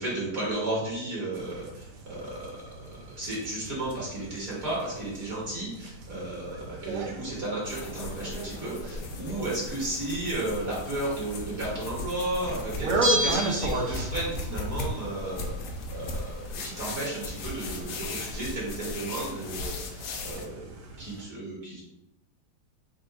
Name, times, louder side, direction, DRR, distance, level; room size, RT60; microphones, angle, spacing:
voice 1, 0.0-2.7 3.0-21.8, right 2 dB, 45° right, -6 dB, 1.7 m, -34 dB
sound 1, 1.3-21.2, right 2 dB, 85° right, 0.7 m, -37 dB
sound 2, 7.6-20.5, left 2 dB, 85° left, 0.7 m, -37 dB
Bell, 13.0-14.4 14.7-14.8, right 1 dB, 10° right, 0.7 m, -29 dB
4.4 x 2.5 x 4.6 m, 0.89 s
omnidirectional pair, 2.3 m